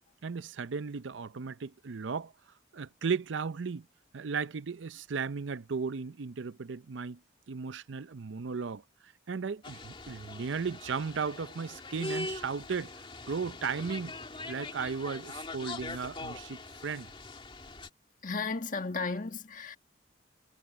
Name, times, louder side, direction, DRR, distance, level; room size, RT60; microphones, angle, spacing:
voice 1, 0.2-2.3 2.7-3.9 4.1-7.2 7.5-14.1 14.5-17.1, right 5 dB, 85° right, 0.6 m, -36 dB
sound 1, 9.6-17.9, left 2 dB, 30° left, 2.7 m, -42 dB
voice 2, 18.2-19.8, left 4 dB, 45° left, 1.7 m, -34 dB
head